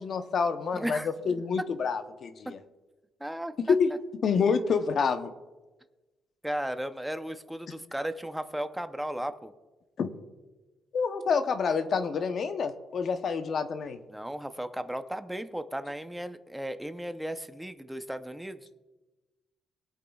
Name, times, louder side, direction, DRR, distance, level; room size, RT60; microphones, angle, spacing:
voice 1, 0.0-2.6 3.7-3.9 4.2-5.3 10.0-10.1 10.9-14.0, left 5 dB, 55° left, 9 dB, 0.8 m, -27 dB
voice 2, 0.7-1.1 3.2-3.7 6.4-9.5 14.1-18.6, right 1 dB, 5° right, 9 dB, 0.7 m, -35 dB
21.5 x 8.2 x 2.4 m, 1.2 s
cardioid pair, 90°, 0 cm